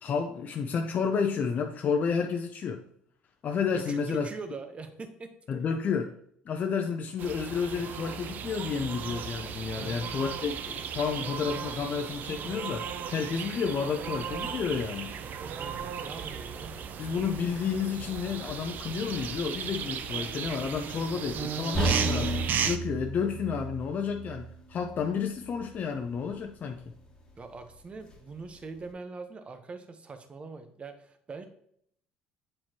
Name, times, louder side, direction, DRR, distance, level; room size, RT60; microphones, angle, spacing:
voice 1, 0.0-2.8 3.4-4.3 5.5-6.2 6.5-15.1 17.0-26.8, left 6 dB, 50° left, 3 dB, 0.6 m, -31 dB
voice 2, 3.7-5.3 9.8-10.0 15.5-16.7 27.4-31.5, right 4 dB, 35° right, 8 dB, 1.0 m, -42 dB
sound 1, 7.2-22.8, right 7 dB, 55° right, 0.6 m, -36 dB
sound 2, 21.7-25.8 26.2-26.3 26.9-27.0, right 2 dB, 25° left, 1.7 m, -33 dB
7.8 x 4.3 x 3.0 m, 0.67 s
supercardioid pair, 80°, 4 cm